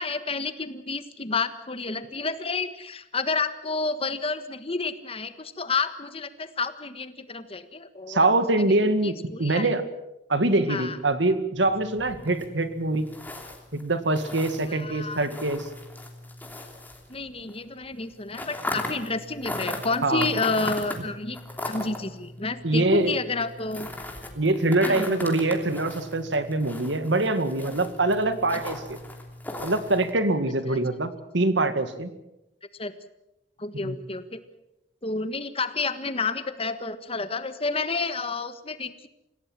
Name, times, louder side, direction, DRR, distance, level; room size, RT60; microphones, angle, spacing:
voice 1, 0.0-8.3 8.6-9.7 10.7-11.0 14.7-15.3 17.1-21.4 21.6-23.9 24.8-25.3 30.7-30.8 32.8-32.9 33.6-34.4 35.0-39.1, left 3 dB, 30° left, 11 dB, 1.5 m, -30 dB
voice 2, 8.1-9.1 9.4-9.8 10.3-13.1 13.7-15.7 20.0-20.3 22.6-23.2 24.4-29.0 29.6-32.1 33.8-34.0, right 2 dB, 85° right, 11 dB, 2.0 m, -24 dB
sound 1, 11.6-17.6 17.8-30.1, left 1 dB, 10° left, 3.0 m, -38 dB
26.5 x 17.0 x 7.4 m, 0.90 s
head